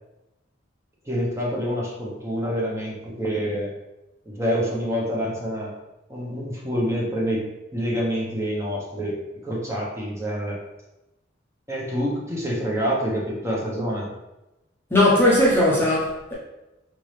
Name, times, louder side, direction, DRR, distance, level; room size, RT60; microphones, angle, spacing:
voice 1, 1.0-3.7 4.2-5.7 6.1-7.4 7.7-9.2 9.4-10.6 11.7-14.1, equal, 15° right, 1.0 m, -27 dB
voice 2, 14.9-16.3, left 1 dB, 10° left, 0.8 m, -18 dB
4.2 x 3.6 x 3.3 m
head